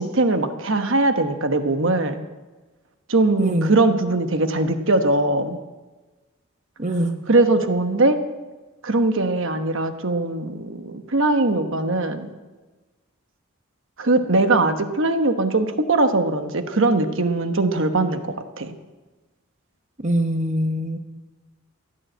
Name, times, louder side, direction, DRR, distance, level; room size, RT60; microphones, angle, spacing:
voice 1, 0.0-2.2 3.1-5.6 7.3-8.2 8.8-12.3 14.0-18.2 18.6-18.7, right 2 dB, 60° right, 8 dB, 1.2 m, -20 dB
voice 2, 3.4-3.7 6.8-7.2 20.0-21.0, right 1 dB, 35° right, 5 dB, 0.9 m, -23 dB
15.5 x 9.8 x 7.9 m, 1.2 s
head